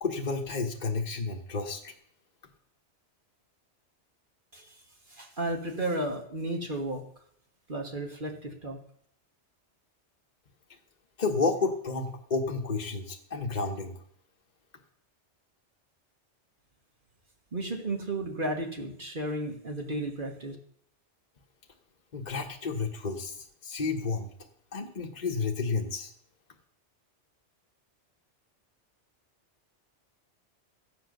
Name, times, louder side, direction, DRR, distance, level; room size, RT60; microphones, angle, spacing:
voice 1, 0.0-1.9 11.2-13.9 22.1-24.3 24.7-26.1, left 4 dB, 40° left, 1 dB, 1.2 m, -31 dB
voice 2, 5.1-7.0 7.7-8.8 17.5-20.5, right 1 dB, 45° right, 2 dB, 1.6 m, -33 dB
13.5 x 8.1 x 6.6 m, 0.68 s
omnidirectional pair, 1.2 m